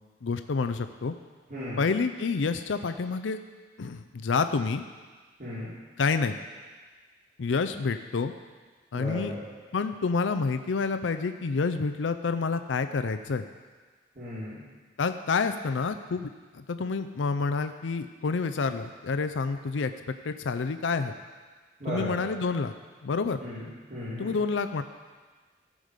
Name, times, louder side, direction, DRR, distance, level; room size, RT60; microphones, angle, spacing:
voice 1, 0.2-1.1 1.8-3.4 3.8-4.8 6.0-6.4 7.4-8.3 8.9-9.3 9.7-13.4 15.0-19.9 20.2-21.1 21.9-22.7 23.0-23.4 24.2-24.8, left 4 dB, 80° left, 9 dB, 0.5 m, -28 dB
voice 2, 1.5-1.8 5.4-5.7 8.9-9.4 14.2-14.6 21.8-22.4 23.4-24.3, equal, 50° right, -12 dB, 3.7 m, -36 dB
15.5 x 5.1 x 6.6 m, 1.4 s
head